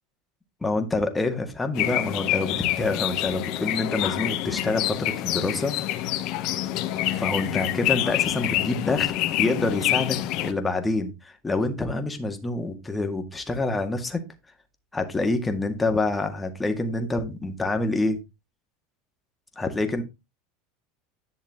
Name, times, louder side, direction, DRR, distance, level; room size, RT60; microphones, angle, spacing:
voice 1, 0.6-5.7 7.2-14.2 14.9-18.2 19.6-20.0, left 2 dB, 15° left, 5 dB, 2.0 m, -27 dB
sound 1, 1.7-10.5, left 14 dB, 55° left, 1.1 m, -27 dB
11.0 x 6.5 x 3.7 m, 0.24 s
supercardioid pair, 110°, 0 cm